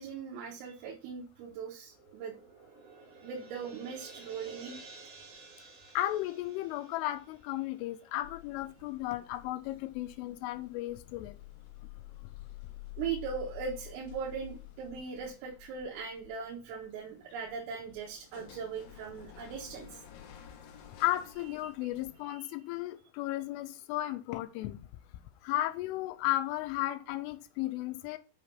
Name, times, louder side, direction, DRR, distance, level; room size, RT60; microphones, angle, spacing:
voice 1, 0.0-2.3 3.2-4.9 13.0-20.0 22.3-22.5, right 6 dB, 90° right, 4.1 m, -39 dB
sound 1, 1.8-8.4, right 3 dB, 55° right, 2.7 m, -53 dB
voice 2, 5.9-11.4 21.0-24.8 25.4-28.2, left 15 dB, 85° left, 3.1 m, -34 dB
sound 2, 8.2-22.2, left 13 dB, 70° left, 2.2 m, -51 dB
7.7 x 5.9 x 5.6 m
omnidirectional pair, 5.7 m